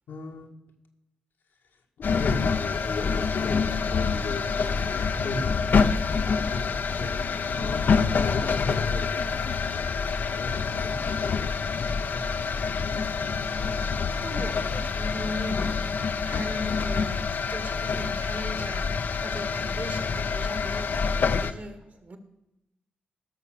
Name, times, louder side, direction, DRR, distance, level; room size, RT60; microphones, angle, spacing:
voice 1, 0.1-0.5 2.0-6.0 6.5-7.9 8.2-9.9 10.3-12.6 15.2-15.5, left 3 dB, 80° left, 1 dB, 2.0 m, -38 dB
sound 1, 2.0-21.5, left 5 dB, 65° left, 0.8 m, -27 dB
voice 2, 13.4-22.2, equal, 55° right, 8 dB, 2.1 m, -39 dB
16.5 x 6.6 x 6.6 m, 0.92 s
supercardioid pair, 45°, 3 cm